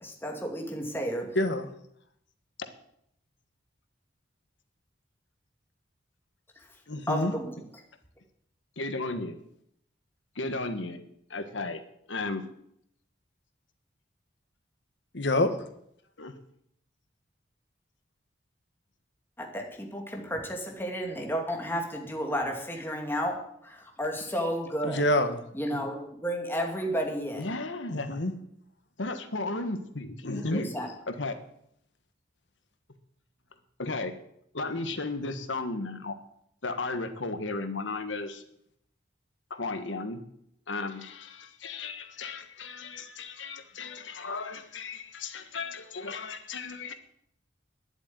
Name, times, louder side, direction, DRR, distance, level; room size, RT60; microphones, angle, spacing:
voice 1, 0.0-1.4 7.1-7.6 19.4-23.4 23.6-25.0 25.5-27.4 30.3-30.9, equal, 10° left, 1 dB, 2.4 m, -32 dB
voice 2, 1.3-1.7 6.9-7.3 15.1-15.5 24.8-25.4 28.1-28.3 30.2-30.6, left 1 dB, 65° left, 8 dB, 1.5 m, -26 dB
voice 3, 8.8-9.4 10.3-11.0 11.3-11.8 12.1-12.4 16.2-16.3 25.7-25.8 27.4-28.2 29.0-30.7 31.1-31.3 33.8-34.1 34.5-36.2 36.6-38.4 39.5-40.2 40.7-46.9, left 3 dB, 85° left, 8 dB, 1.5 m, -35 dB
10.5 x 8.1 x 9.4 m, 0.74 s
head